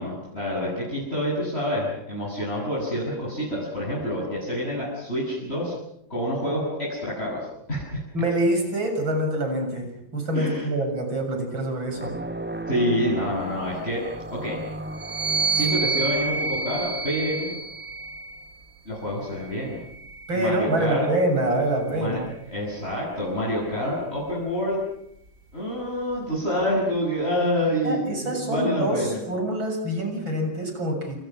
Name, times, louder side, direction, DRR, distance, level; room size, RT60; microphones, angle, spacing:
voice 1, 0.0-5.7 6.1-8.0 10.3-10.7 12.7-14.6 15.5-17.5 18.9-19.8 20.3-21.1 21.9-22.2 22.5-24.8 25.5-29.2, equal, 30° left, -6 dB, 7.8 m, -27 dB
voice 2, 8.1-12.1 20.3-22.3 27.8-31.2, right 1 dB, 80° right, 4 dB, 7.9 m, -26 dB
sound 1, 11.9-18.1, right 1 dB, 10° right, 0.7 m, -36 dB
sound 2, 14.9-18.5 19.4-21.0, right 4 dB, 55° right, 4.1 m, -29 dB
28.5 x 28.5 x 6.2 m, 0.75 s
omnidirectional pair, 2.1 m